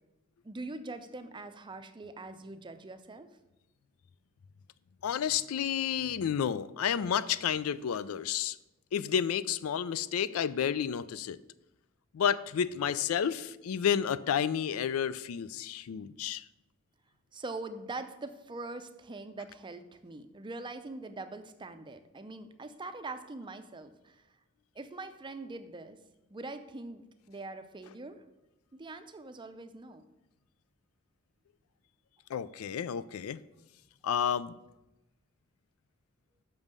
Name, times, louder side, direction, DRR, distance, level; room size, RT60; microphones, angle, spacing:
voice 1, 0.4-3.3 17.3-24.2 24.8-26.0 26.3-27.0 27.3-28.2 28.7-30.0, right 2 dB, 20° right, 9 dB, 0.5 m, -43 dB
voice 2, 5.0-8.6 8.9-11.4 12.1-16.4 32.3-33.4 34.0-34.5, left 8 dB, 85° left, 17 dB, 0.4 m, -31 dB
6.1 x 5.4 x 6.6 m, 0.96 s
head